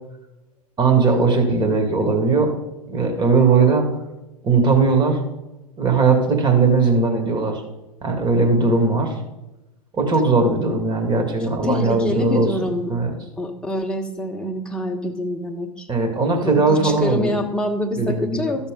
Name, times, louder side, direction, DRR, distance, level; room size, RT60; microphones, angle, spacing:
voice 1, 0.8-2.5 2.9-3.9 4.4-5.2 5.8-7.6 8.0-9.1 9.9-12.5 12.9-13.1 15.9-17.4 18.0-18.5, right 4 dB, 25° right, 3 dB, 2.1 m, -18 dB
voice 2, 11.4-12.9 13.4-15.9 16.4-18.7, left 1 dB, 5° left, 1 dB, 1.4 m, -26 dB
13.5 x 6.8 x 3.8 m, 1.0 s
figure-of-eight pair, 95°, 19 cm